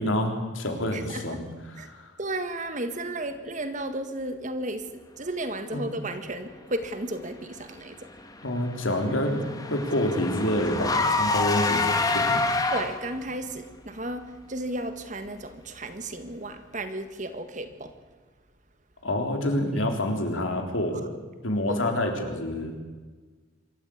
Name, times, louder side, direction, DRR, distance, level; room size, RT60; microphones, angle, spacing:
voice 1, 0.0-2.1 5.7-5.9 8.4-12.4 19.0-21.1 21.4-22.7, left 1 dB, 85° left, 4 dB, 3.8 m, -27 dB
voice 2, 0.9-1.4 1.8-1.9 2.2-4.9 5.2-8.0 12.7-17.9 21.7-21.8, right 1 dB, 40° right, 9 dB, 1.8 m, -33 dB
Car / Engine, 8.2-13.2, left 3 dB, 20° left, 1.7 m, -27 dB
25.5 x 13.5 x 8.7 m, 1.4 s
head